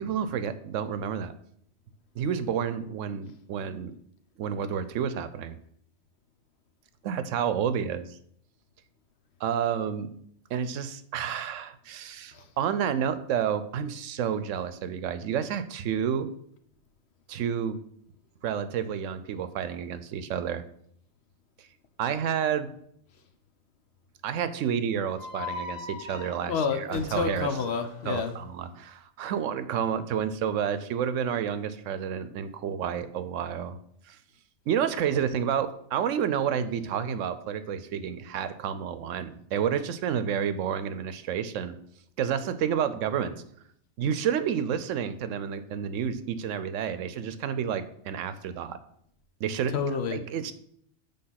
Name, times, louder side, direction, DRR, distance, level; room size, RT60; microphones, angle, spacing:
voice 1, 0.0-1.3 2.2-4.0 4.4-5.6 7.0-8.2 9.4-10.1 10.5-16.3 17.3-17.8 18.4-20.6 22.0-22.7 24.2-27.6 28.1-33.8 34.1-34.2 34.7-41.8 42.2-43.4 44.0-48.8 49.4-49.8 50.1-50.5, right 8 dB, 80° right, 12 dB, 0.9 m, -30 dB
sound 1, 25.1-28.3, left 4 dB, 35° left, 1.4 m, -41 dB
voice 2, 26.5-28.3 49.7-50.2, left 5 dB, 60° left, 7 dB, 0.9 m, -28 dB
7.8 x 3.6 x 5.7 m, 0.68 s
omnidirectional pair, 1.3 m